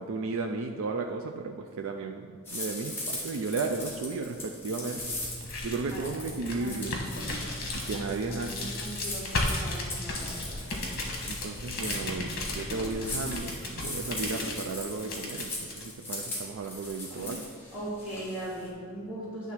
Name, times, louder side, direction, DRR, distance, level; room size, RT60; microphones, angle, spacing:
voice 1, 0.0-5.0 5.6-7.0 7.7-8.5 11.3-17.4, right 3 dB, 70° right, 4 dB, 0.4 m, -34 dB
sound 1, 2.4-18.7, left 2 dB, 10° left, 1.6 m, -39 dB
sound 2, 5.0-15.8, left 2 dB, 45° left, 1.2 m, -35 dB
voice 2, 5.9-6.3 6.6-7.0 7.9-8.0 8.3-10.6 17.7-19.5, right 1 dB, 5° right, -10 dB, 2.0 m, -39 dB
9.5 x 3.6 x 5.7 m, 2.1 s
head